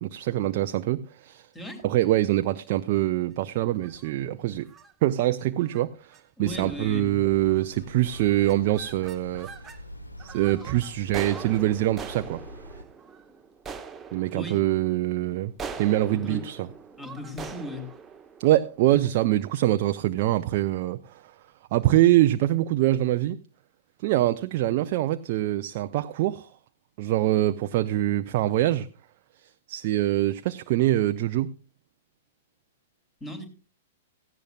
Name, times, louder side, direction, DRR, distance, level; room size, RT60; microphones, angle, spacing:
voice 1, 0.0-1.5 1.8-4.7 5.0-9.5 10.2-12.4 14.1-16.7 18.4-21.2 21.7-23.4 24.0-26.5 27.0-28.9 29.7-31.5, right 15 dB, 45° right, 0.5 m, -24 dB
sound 1, 3.7-4.1 4.7-4.9 5.6-5.8 6.1-6.2 6.5-6.9 7.5-7.8 8.1-9.8 10.2-19.4, right 5 dB, 15° right, 1.1 m, -42 dB
sound 2, 6.4-12.8, equal, 85° left, 1.5 m, -44 dB
voice 2, 6.4-7.2 14.3-14.6 16.1-16.4 17.0-17.9 33.2-33.5, left 1 dB, 10° left, 3.1 m, -36 dB
16.5 x 15.0 x 2.4 m
figure-of-eight pair, 105°, 0 cm